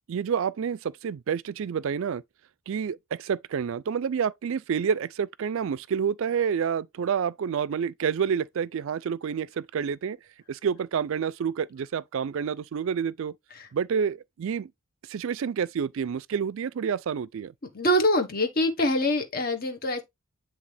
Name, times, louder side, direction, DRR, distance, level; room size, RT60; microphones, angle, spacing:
voice 1, 0.1-2.2 2.7-10.2 10.5-13.3 13.7-14.7 15.1-17.5, right 7 dB, 60° right, 0.3 m, -28 dB
voice 2, 17.7-20.0, left 1 dB, 40° left, 1.2 m, -24 dB
9.5 x 3.3 x 3.3 m
head